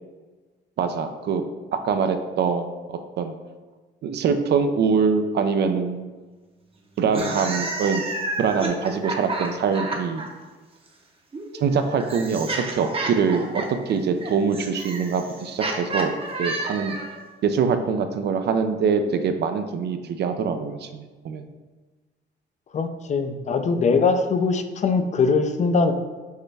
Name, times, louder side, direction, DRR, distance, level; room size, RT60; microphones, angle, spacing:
voice 1, 0.8-1.4 1.8-3.3 4.0-6.1 7.0-8.0 8.4-10.2 11.6-17.0 17.4-20.9 21.2-21.4, right 5 dB, 60° right, 7 dB, 0.4 m, -24 dB
sound 1, 7.0-10.3 11.3-17.2, right 2 dB, 30° right, 0.7 m, -30 dB
voice 2, 22.7-25.9, left 4 dB, 35° left, 8 dB, 0.4 m, -21 dB
6.4 x 2.2 x 3.3 m, 1.3 s
cardioid pair, 90°, 20 cm